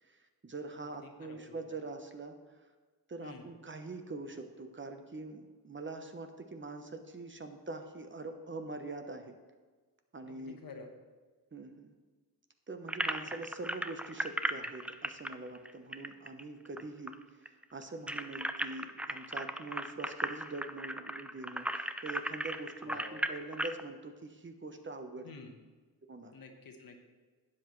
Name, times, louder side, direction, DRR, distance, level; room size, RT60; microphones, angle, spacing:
voice 1, 0.0-2.4 3.1-9.3 10.1-10.6 11.5-11.9 12.7-17.1 17.4-25.3 26.1-26.3, right 3 dB, 30° right, 6 dB, 0.9 m, -44 dB
voice 2, 1.0-1.8 3.2-3.5 10.3-10.9 13.2-13.3 22.8-23.3 25.2-25.6 26.3-27.0, left 4 dB, 65° left, 4 dB, 1.3 m, -50 dB
sound 1, 12.9-16.8 17.1-17.2 17.5-23.8, right 1 dB, 5° right, 0.4 m, -36 dB
12.0 x 8.3 x 3.2 m, 1.4 s
cardioid pair, 75°, 37 cm